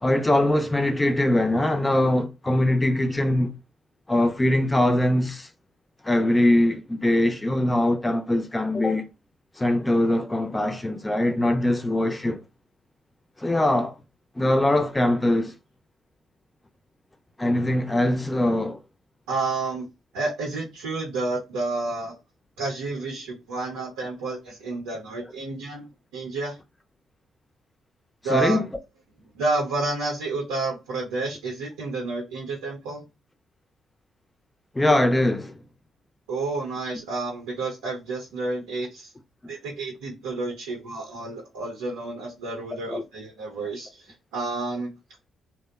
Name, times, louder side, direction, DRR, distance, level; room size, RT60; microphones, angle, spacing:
voice 1, 0.0-3.5 4.1-5.5 6.0-9.1 9.6-12.4 13.4-14.0 14.4-15.5 17.4-18.8 28.3-28.7 34.7-35.6 39.4-39.5 42.9-43.0, left 1 dB, 20° left, 0.4 m, -22 dB
voice 2, 19.3-19.9 20.1-22.2 22.6-25.9 26.1-26.6 28.2-28.6 29.3-33.0 36.3-39.1 39.5-44.9, right 3 dB, 85° right, 0.6 m, -30 dB
2.8 x 2.0 x 2.2 m
hypercardioid pair, 45°, 0 cm